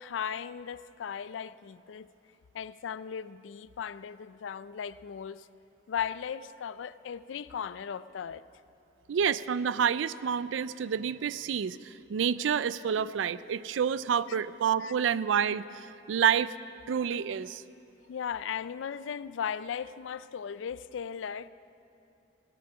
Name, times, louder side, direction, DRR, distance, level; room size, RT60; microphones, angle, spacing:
voice 1, 0.0-2.1 2.5-5.5 5.9-8.4 14.8-14.9 18.1-21.5, left 7 dB, 80° left, 16 dB, 0.4 m, -37 dB
voice 2, 9.1-16.5 16.9-17.6, right 7 dB, 80° right, 17 dB, 0.4 m, -28 dB
17.0 x 12.0 x 6.1 m, 2.8 s
head